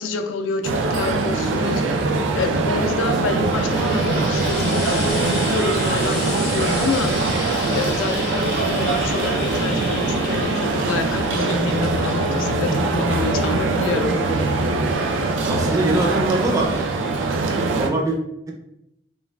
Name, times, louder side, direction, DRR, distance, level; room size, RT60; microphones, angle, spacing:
voice 1, 0.0-7.2 7.7-14.2, left 4 dB, 90° left, 6 dB, 0.3 m, -27 dB
sound 1, 0.6-17.9, right 3 dB, 85° right, 0.4 m, -22 dB
Frying (food), 3.0-16.3 17.3-17.4, left 3 dB, 60° left, 0.7 m, -34 dB
voice 2, 12.4-12.9 15.5-16.9 17.7-18.2, right 2 dB, 20° right, 0 dB, 0.4 m, -23 dB
3.1 x 2.3 x 2.2 m, 0.81 s
head